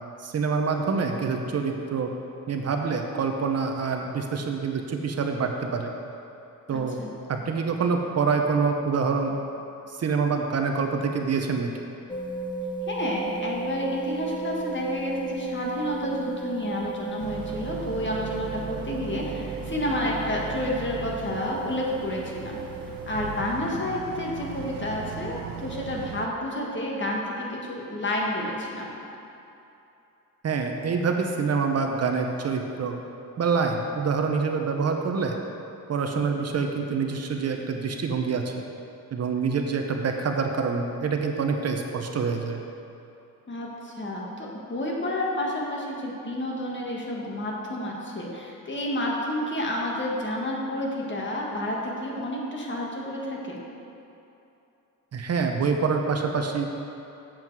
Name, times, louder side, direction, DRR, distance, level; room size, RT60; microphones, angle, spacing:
voice 1, 0.2-2.1 2.5-5.9 6.7-7.0 7.3-9.4 9.9-11.7 30.4-33.0 33.4-35.4 35.9-38.5 39.1-42.6 55.1-56.7, right 5 dB, 50° right, 3 dB, 0.8 m, -26 dB
voice 2, 6.7-7.1 12.9-22.6 23.1-28.9 43.5-53.6, left 1 dB, 35° left, -2 dB, 1.6 m, -30 dB
sound 1, 12.1-23.4, right 3 dB, 15° left, 0.5 m, -35 dB
Boat Water vehicle, 17.2-26.3, right 8 dB, 85° right, 0.6 m, -38 dB
7.6 x 7.4 x 4.7 m, 2.8 s
cardioid pair, 95°, 33 cm